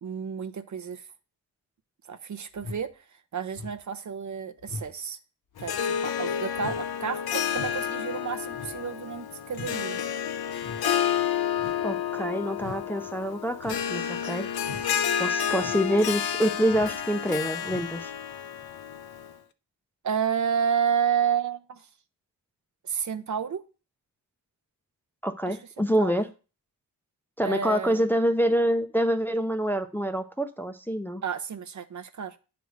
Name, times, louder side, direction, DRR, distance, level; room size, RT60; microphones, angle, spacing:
voice 1, 0.0-1.1 2.1-3.0 3.3-5.2 5.6-10.0 20.0-21.9 22.8-23.6 25.5-26.2 27.4-28.0 31.2-32.4, right 7 dB, 50° right, 10 dB, 0.7 m, -30 dB
sound 1, 2.6-2.9 3.5-3.8 4.6-4.9 5.5-5.8 6.5-6.9 7.5-7.9 8.5-8.8 9.5-9.8 10.6-10.9 11.6-11.9 12.6-12.8 13.6-13.9 14.6-14.9 15.6-15.9 16.7-17.0 17.6-18.0 18.6-18.7, left 3 dB, 50° left, 1.2 m, -42 dB
Harp, 5.6-19.3, left 8 dB, 70° left, 0.6 m, -30 dB
voice 2, 11.8-14.5 15.2-18.1 25.2-26.3 27.4-31.2, equal, 5° left, 7 dB, 0.5 m, -26 dB
9.1 x 3.5 x 6.4 m, 0.33 s
wide cardioid pair, 120°, 39 cm